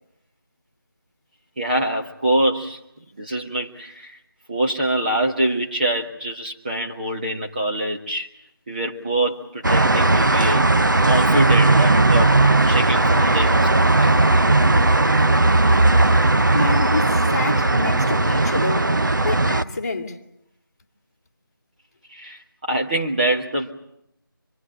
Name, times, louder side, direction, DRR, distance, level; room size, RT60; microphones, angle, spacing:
voice 1, 1.6-2.8 3.2-4.2 4.5-8.3 8.7-10.6 11.0-12.4 12.6-14.1 22.1-23.7, right 1 dB, 25° right, 1.2 m, -24 dB
sound 1, 9.6-19.6, right 2 dB, 60° right, 1.0 m, -17 dB
voice 2, 16.5-19.0 19.2-20.2, left 3 dB, 15° left, 1.9 m, -28 dB
25.5 x 22.0 x 8.8 m
figure-of-eight pair, 165°, 12 cm